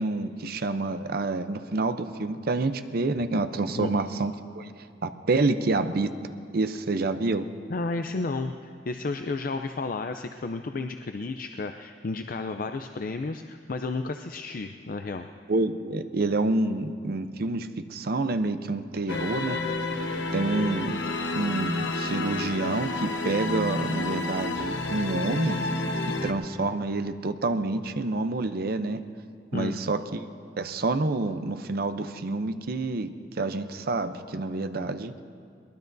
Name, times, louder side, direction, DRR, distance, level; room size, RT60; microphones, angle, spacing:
voice 1, 0.0-4.7 5.0-6.1 6.5-7.4 15.5-19.6 20.3-21.0 21.3-25.6 26.0-29.0 29.5-30.3 30.6-33.1 33.4-35.1, right 2 dB, 60° right, 9 dB, 0.6 m, -28 dB
voice 2, 7.7-15.3 29.5-29.8, left 3 dB, 50° left, 6 dB, 0.5 m, -32 dB
sound 1, 19.1-26.3, left 2 dB, 85° left, 1.1 m, -30 dB
22.5 x 19.5 x 2.7 m, 2.3 s
head